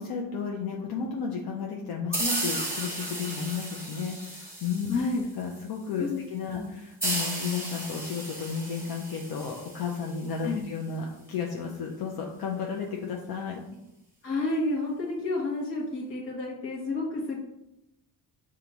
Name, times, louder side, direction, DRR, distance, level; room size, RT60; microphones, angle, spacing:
voice 1, 0.0-5.0 5.4-13.6, left 5 dB, 70° left, 0 dB, 0.7 m, -33 dB
sound 1, 2.1-5.5, left 1 dB, 15° left, 0.5 m, -46 dB
sound 2, 2.1-5.5 7.0-10.5, right 1 dB, 5° right, 1.3 m, -34 dB
voice 2, 4.9-5.2 6.0-6.2 6.5-6.7 10.4-10.6 14.2-17.4, left 2 dB, 35° left, -6 dB, 1.1 m, -30 dB
6.8 x 2.5 x 3.0 m, 0.88 s
cardioid pair, 115°, 38 cm